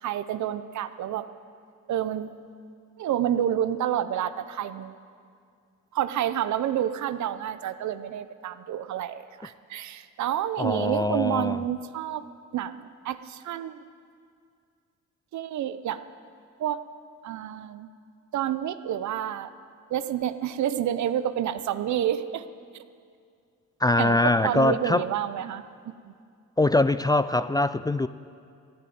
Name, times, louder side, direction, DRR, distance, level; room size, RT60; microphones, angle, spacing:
voice 1, 0.0-1.3 1.9-2.3 3.0-5.0 5.9-12.2 12.5-13.8 15.3-16.0 16.6-16.8 17.2-17.9 18.3-19.5 19.9-22.4 24.0-25.6 26.1-26.2, right 10 dB, 70° right, 13 dB, 0.7 m, -29 dB
voice 2, 10.6-11.6 23.8-25.0 26.6-28.1, left 2 dB, 15° left, 13 dB, 0.3 m, -23 dB
14.0 x 10.5 x 9.4 m, 2.3 s
cardioid pair, 90°, 30 cm